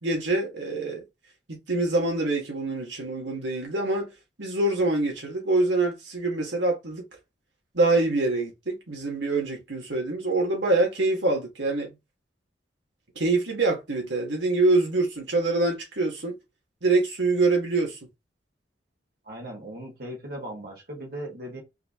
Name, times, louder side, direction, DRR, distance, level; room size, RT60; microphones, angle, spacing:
voice 1, 0.0-1.0 1.5-4.1 4.4-7.1 7.7-11.9 13.2-16.4 16.8-18.0, right 2 dB, 80° right, 2.2 m, -25 dB
voice 2, 19.3-21.6, right 1 dB, 55° right, 1.9 m, -38 dB
4.8 x 3.2 x 3.1 m
head